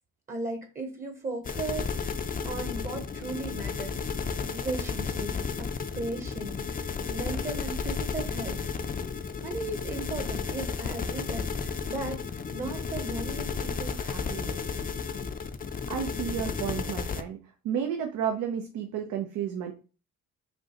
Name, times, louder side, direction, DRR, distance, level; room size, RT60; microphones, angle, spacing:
voice 1, 0.3-2.2 2.4-4.0 4.4-5.7 5.9-8.6 9.4-14.8, right 2 dB, 25° right, 5 dB, 0.8 m, -37 dB
sound 1, 1.5-17.2, left 5 dB, 30° left, 0.5 m, -33 dB
voice 2, 15.9-17.4 17.6-19.7, right 8 dB, 85° right, 4 dB, 0.7 m, -31 dB
5.2 x 2.7 x 2.9 m, 0.34 s
cardioid pair, 90°, 30 cm